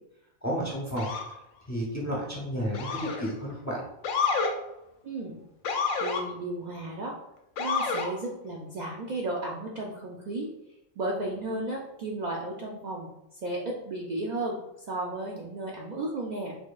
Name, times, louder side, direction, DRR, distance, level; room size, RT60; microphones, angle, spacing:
voice 1, 0.4-1.1 1.7-3.8, equal, 20° left, -3 dB, 0.6 m, -31 dB
Motor vehicle (road) / Siren, 1.0-1.3 2.7-3.3 4.0-4.5 5.6-6.2 7.6-8.1, left 5 dB, 90° left, 1.0 m, -28 dB
voice 2, 5.0-5.4 6.0-7.2 7.6-10.5 11.0-13.1 13.4-14.6 14.9-16.6, right 2 dB, 80° right, -2 dB, 0.4 m, -34 dB
4.4 x 2.7 x 2.3 m, 0.82 s
omnidirectional pair, 1.3 m